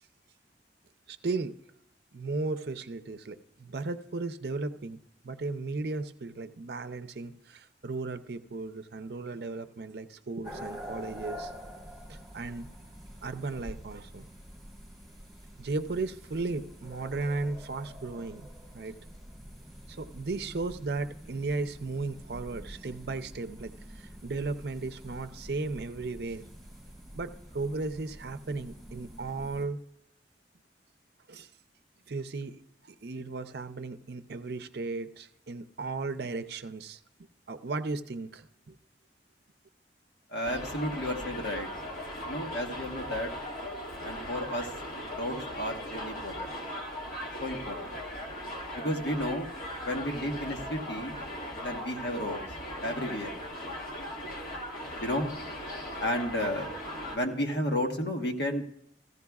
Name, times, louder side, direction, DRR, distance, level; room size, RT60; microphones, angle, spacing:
voice 1, 1.1-1.6 2.1-11.5 12.1-12.7 13.2-14.3 15.6-18.5 18.7-19.0 19.9-26.4 27.1-29.9 31.3-31.5 32.1-37.0 37.5-38.8, right 3 dB, 65° right, 11 dB, 0.5 m, -35 dB
sound 1, 10.4-29.7, equal, ahead, 3.6 m, -47 dB
voice 2, 40.3-41.7 42.2-43.3 44.0-44.7 45.2-46.6 47.4-48.0 48.7-49.5 49.8-51.2 51.6-52.5 52.8-53.3 55.0-55.3 56.0-56.7 57.1-58.6, left 1 dB, 75° left, 3 dB, 1.3 m, -32 dB
Subway metro underground, 40.4-57.2, equal, 50° left, 2.0 m, -38 dB
15.0 x 15.0 x 2.3 m, 0.78 s
head